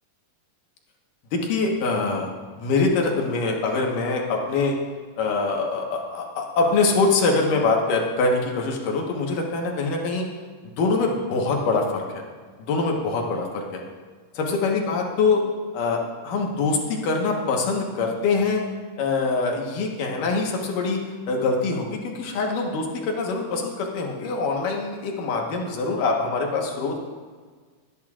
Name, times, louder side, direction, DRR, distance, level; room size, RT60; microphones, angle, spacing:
voice 1, 1.3-2.3 2.6-4.8 5.2-10.3 10.8-12.2 12.6-13.8 14.3-15.4 15.7-18.6 19.0-21.0 21.3-27.0, left 3 dB, 70° left, 0 dB, 2.9 m, -24 dB
22.5 x 10.5 x 2.5 m, 1.5 s
omnidirectional pair, 4.0 m